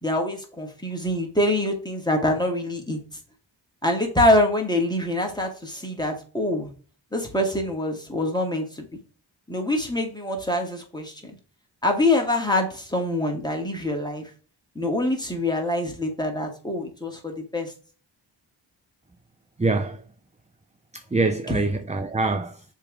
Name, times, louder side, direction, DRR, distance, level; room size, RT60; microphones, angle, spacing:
voice 1, 0.0-3.0 3.8-6.7 7.1-8.9 9.5-11.3 11.8-14.3 14.7-17.7 21.5-21.6, left 1 dB, 10° left, 2.5 m, -25 dB
voice 2, 19.6-20.0 20.9-22.6, right 3 dB, 15° right, 0.6 m, -25 dB
6.6 x 3.7 x 4.8 m
cardioid pair, 45°, 49 cm